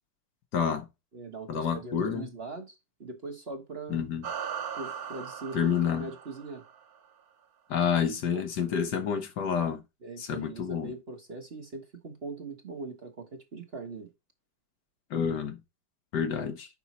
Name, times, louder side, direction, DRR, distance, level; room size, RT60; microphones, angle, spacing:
voice 1, 0.5-0.9 1.5-2.3 3.9-4.3 5.5-6.0 7.7-9.8 10.2-10.9 15.1-15.6 16.1-16.7, left 7 dB, 65° left, 1.5 m, -29 dB
voice 2, 1.1-4.1 4.8-6.6 8.0-8.5 10.0-14.1, right 3 dB, 35° right, 1.2 m, -41 dB
sound 1, 4.2-7.0, right 8 dB, 60° right, 1.2 m, -38 dB
7.1 x 5.4 x 4.2 m
omnidirectional pair, 2.0 m